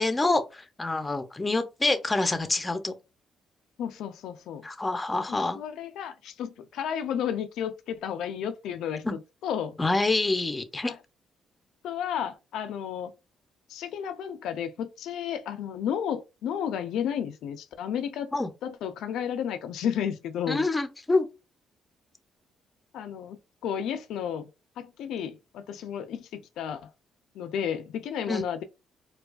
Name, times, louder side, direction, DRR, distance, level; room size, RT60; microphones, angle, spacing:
voice 1, 0.0-3.0 4.6-5.6 9.0-9.2 9.8-10.9 18.3-18.5 20.5-21.3 28.3-28.4, left 2 dB, 20° left, 0.6 m, -26 dB
voice 2, 3.8-4.6 5.3-9.1 9.4-9.8 10.8-11.0 11.8-13.1 13.7-18.3 18.6-20.6 22.9-23.4 23.6-24.5 24.8-26.9 27.4-28.6, left 8 dB, 80° left, 0.4 m, -32 dB
4.5 x 2.3 x 2.3 m
cardioid pair, 90°, 0 cm